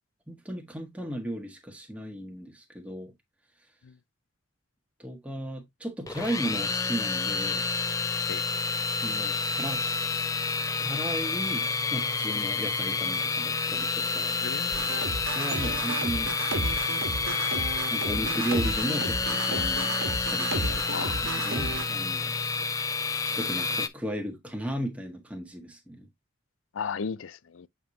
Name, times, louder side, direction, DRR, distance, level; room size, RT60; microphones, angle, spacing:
voice 1, 0.3-3.1 5.0-7.6 8.9-9.9 10.8-14.4 15.3-16.3 17.9-19.9 20.2-20.8 21.4-22.3 23.3-26.1, equal, 5° right, 1.5 m, -35 dB
sound 1, 6.1-23.9, left 4 dB, 15° left, 0.5 m, -29 dB
voice 2, 14.4-14.9 20.9-21.5 22.6-22.7 26.7-27.7, left 6 dB, 80° left, 0.5 m, -36 dB
sound 2, 14.7-21.8, right 2 dB, 90° right, 1.4 m, -33 dB
7.9 x 4.9 x 2.7 m
head